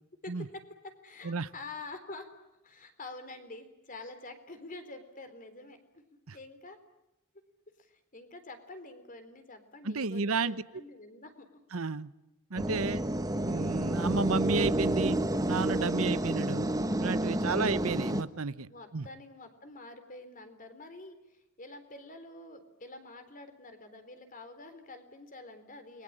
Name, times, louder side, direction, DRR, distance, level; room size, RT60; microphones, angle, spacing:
voice 1, 0.2-2.3 2.6-6.8 7.8-11.6 18.7-26.0, left 2 dB, 40° left, 8 dB, 3.9 m, -47 dB
voice 2, 9.8-10.6 11.7-12.1 12.5-13.0 13.4-15.2 15.5-16.7 17.0-19.1, right 4 dB, 90° right, 15 dB, 0.9 m, -32 dB
sound 1, 12.6-18.2, right 1 dB, 20° right, 1.3 m, -30 dB
29.5 x 22.0 x 8.9 m, 0.92 s
head